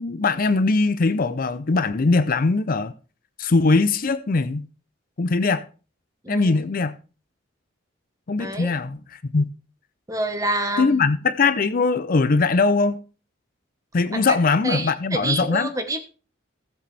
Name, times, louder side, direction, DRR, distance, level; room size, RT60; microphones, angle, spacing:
voice 1, 0.0-2.9 3.4-4.7 5.2-5.7 6.3-7.0 8.3-9.5 10.8-13.0 13.9-15.7, left 3 dB, 45° left, 0.5 m, -21 dB
voice 2, 6.2-6.6 8.4-8.7 10.1-11.1 14.1-14.4 14.6-16.0, right 1 dB, 15° right, 1.3 m, -27 dB
16.0 x 7.6 x 3.4 m
head